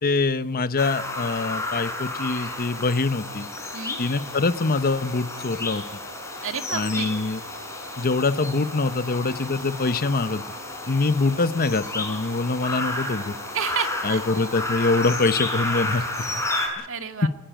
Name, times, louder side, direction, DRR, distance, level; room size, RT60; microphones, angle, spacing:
voice 1, 0.0-3.5 4.0-5.8 6.7-7.4 8.0-10.4 10.9-13.3 14.0-16.4 16.8-16.9 17.2-17.3, left 3 dB, 45° left, 13 dB, 0.9 m, -24 dB
sound 1, 0.8-16.7, left 2 dB, 15° left, 6.5 m, -32 dB
voice 2, 6.4-7.2 13.5-14.2 16.9-17.3, right 7 dB, 65° right, 6 dB, 2.2 m, -30 dB
21.0 x 19.5 x 9.1 m, 0.91 s
head